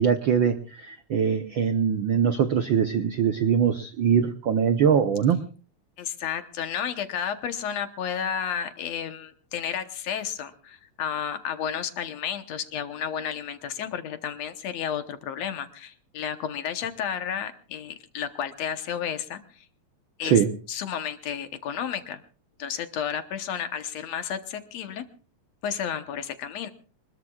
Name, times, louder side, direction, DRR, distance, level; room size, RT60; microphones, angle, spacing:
voice 1, 0.0-5.4 20.2-20.5, right 7 dB, 75° right, 8 dB, 1.1 m, -22 dB
voice 2, 6.0-19.7 20.2-20.4 20.7-22.2 22.6-25.0 25.6-26.7, left 8 dB, 65° left, 9 dB, 2.1 m, -32 dB
25.5 x 21.0 x 2.4 m, 0.39 s
omnidirectional pair, 3.4 m